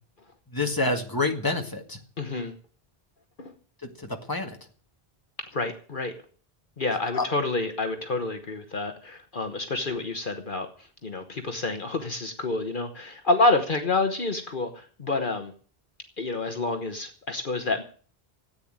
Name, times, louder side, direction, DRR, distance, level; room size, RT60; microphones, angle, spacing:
voice 1, 0.5-2.0 3.8-4.6 7.1-7.3, left 2 dB, 20° left, 4 dB, 2.0 m, -28 dB
voice 2, 2.2-2.5 3.4-3.5 5.4-6.1 6.8-15.5 16.2-17.8, left 2 dB, 55° left, 6 dB, 1.4 m, -28 dB
14.5 x 8.8 x 8.8 m, 0.43 s
omnidirectional pair, 1.0 m